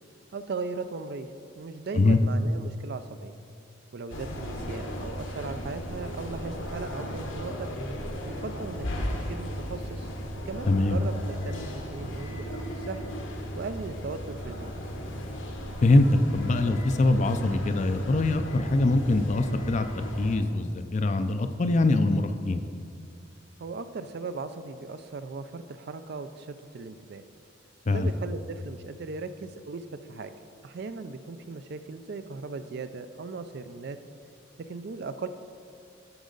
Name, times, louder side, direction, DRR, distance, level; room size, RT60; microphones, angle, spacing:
voice 1, 0.3-3.3 3.9-7.7 8.2-8.9 9.1-10.1 10.5-12.6 12.9-13.1 13.5-14.7 23.6-27.2 27.9-30.3 30.6-34.0 34.6-35.3, right 4 dB, 55° right, 11 dB, 0.4 m, -38 dB
sound 1, 4.1-20.4, equal, 70° left, 1.1 m, -36 dB
voice 2, 10.7-11.0 15.8-22.6 27.9-28.1, left 2 dB, 35° left, 9 dB, 0.4 m, -23 dB
11.5 x 6.2 x 3.9 m, 2.5 s
head